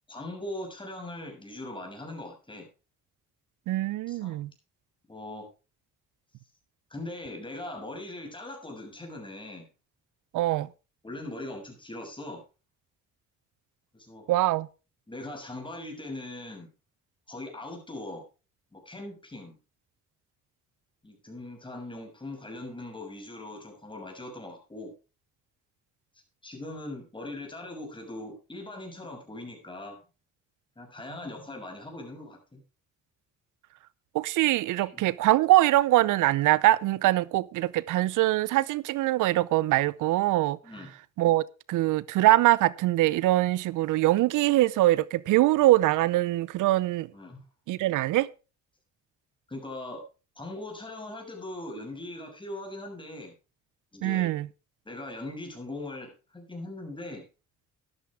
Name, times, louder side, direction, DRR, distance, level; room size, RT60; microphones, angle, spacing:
voice 1, 0.1-2.7 4.1-4.4 5.1-5.5 6.9-9.7 11.0-12.4 13.9-14.2 15.1-16.7 17.3-18.2 18.7-19.6 21.0-24.9 26.4-30.0 30.8-32.6 34.8-35.0 40.6-40.9 47.1-47.4 49.5-50.0 50.3-53.3 53.9-54.3 54.8-57.2, left 2 dB, 15° left, 6.6 m, -40 dB
voice 2, 3.7-4.5 10.3-10.7 14.3-14.7 34.1-40.6 41.2-47.1 47.7-48.3 54.0-54.5, right 16 dB, 85° right, 0.7 m, -23 dB
13.5 x 11.5 x 3.5 m
cardioid pair, 90°, 30 cm